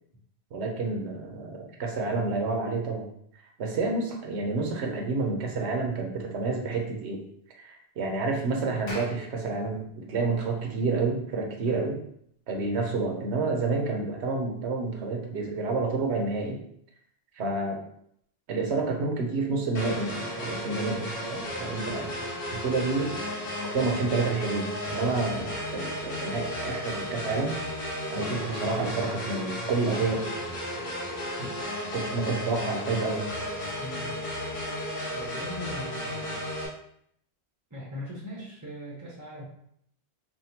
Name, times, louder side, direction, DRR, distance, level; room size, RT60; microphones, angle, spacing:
voice 1, 0.5-3.1 3.6-7.2 7.6-12.0 12.5-16.6 17.4-17.8 18.5-22.2 22.5-23.1 23.7-27.6 28.1-30.3 31.4-31.5 31.9-33.3, right 3 dB, 85° right, 1 dB, 1.0 m, -29 dB
Clapping, 8.9-13.5, left 1 dB, 85° left, 1.2 m, -47 dB
sound 1, 19.7-36.7, left 1 dB, 60° left, 0.9 m, -34 dB
voice 2, 33.8-34.2 35.1-36.4 37.7-39.4, equal, 20° right, -4 dB, 0.5 m, -40 dB
3.6 x 2.2 x 2.8 m, 0.69 s
omnidirectional pair, 1.1 m